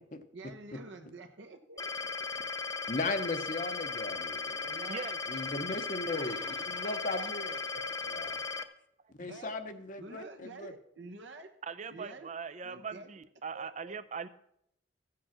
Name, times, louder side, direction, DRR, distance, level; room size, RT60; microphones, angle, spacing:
voice 1, 0.3-2.4 4.6-5.1 6.1-8.3 9.2-9.6 10.0-11.5 11.9-12.3 12.6-13.2 13.5-14.0, right 3 dB, 70° right, 4 dB, 1.0 m, -49 dB
sound 1, 1.8-8.6, left 4 dB, 20° left, 0.6 m, -37 dB
voice 2, 2.9-4.7 5.3-7.5 8.1-8.4 9.2-10.7, left 2 dB, 40° left, 7 dB, 0.8 m, -37 dB
voice 3, 11.6-14.3, right 5 dB, 35° right, 13 dB, 0.5 m, -40 dB
15.0 x 7.7 x 5.9 m, 0.74 s
head